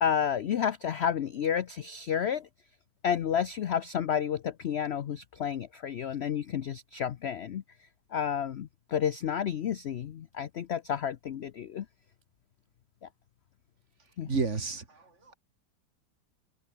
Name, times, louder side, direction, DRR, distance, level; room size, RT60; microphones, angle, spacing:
voice 1, 0.0-2.5 3.0-7.6 8.1-11.8 13.0-13.1 14.2-14.3, left 8 dB, 70° left, 0.6 m, -31 dB
voice 2, 14.2-15.0, right 4 dB, 40° right, 2.4 m, -30 dB
open air
omnidirectional pair, 1.9 m